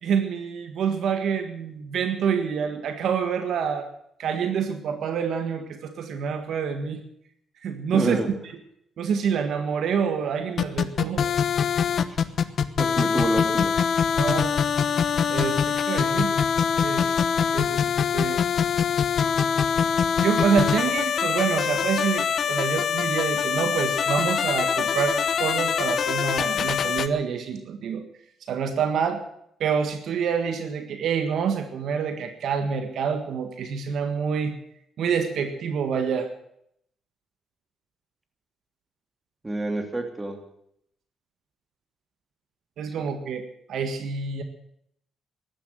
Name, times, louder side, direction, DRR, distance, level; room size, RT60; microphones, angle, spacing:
voice 1, 0.0-3.9 4.2-7.0 7.6-8.2 9.0-11.2 14.2-14.5 15.3-16.3 16.8-17.2 17.5-18.4 20.2-28.0 28.5-29.2 29.6-34.5 35.0-36.3 42.8-44.4, right 6 dB, 70° right, 7 dB, 1.6 m, -27 dB
voice 2, 7.9-8.3 12.1-12.2 12.6-13.7 39.4-40.4, right 1 dB, 15° right, 5 dB, 3.0 m, -28 dB
sound 1, 10.6-27.1, left 7 dB, 55° left, 1.0 m, -23 dB
14.5 x 11.5 x 7.9 m, 0.72 s
cardioid pair, 90°, 0 cm